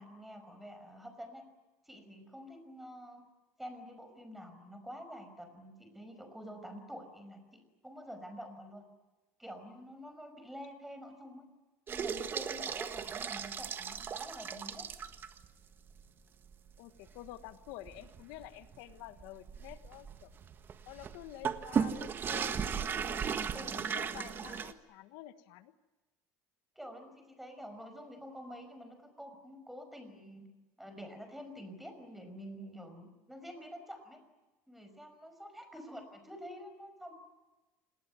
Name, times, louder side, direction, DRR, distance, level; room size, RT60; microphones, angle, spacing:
voice 1, 0.0-1.4 1.9-3.2 3.6-8.9 9.4-11.5 11.9-14.9 23.5-23.9 26.8-30.4 30.8-34.2 34.7-37.1, equal, 5° right, 7 dB, 5.4 m, -48 dB
sound 1, 11.9-15.5 15.9-16.0 16.5-16.6 17.1-24.7, right 7 dB, 30° right, 1.5 m, -36 dB
voice 2, 16.8-20.3 20.9-23.4 23.7-25.7, left 14 dB, 75° left, 11 dB, 1.3 m, -49 dB
27.5 x 19.5 x 9.4 m, 1.1 s
cardioid pair, 135°, 7 cm